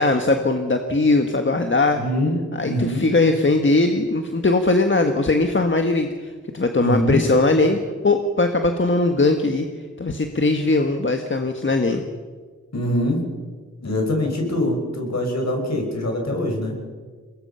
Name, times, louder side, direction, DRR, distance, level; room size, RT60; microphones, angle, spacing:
voice 1, 0.0-2.0 2.6-9.7 10.0-12.0, left 2 dB, 40° left, 5 dB, 1.5 m, -20 dB
voice 2, 1.9-3.0 6.8-7.2 12.7-13.2 13.8-16.7, left 1 dB, 60° left, 2 dB, 5.6 m, -23 dB
22.5 x 20.5 x 5.6 m, 1.5 s
cardioid pair, 55°, 30 cm